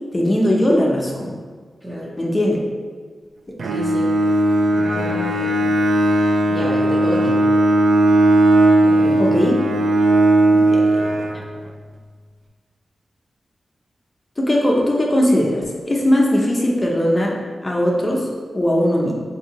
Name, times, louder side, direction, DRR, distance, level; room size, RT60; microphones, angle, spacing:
voice 1, 0.1-1.3 2.2-2.6 9.2-9.6 10.5-10.8 14.4-17.3 17.6-18.3 18.5-19.1, left 1 dB, 25° left, -2 dB, 0.7 m, -19 dB
voice 2, 1.8-2.2 3.7-4.1 4.8-5.7 6.1-7.4 8.8-9.3, equal, 15° right, -8 dB, 0.7 m, -30 dB
Bowed string instrument, 3.6-11.8, right 1 dB, 85° right, 0.4 m, -17 dB
4.1 x 2.7 x 2.9 m, 1.5 s
cardioid pair, 60°, 0 cm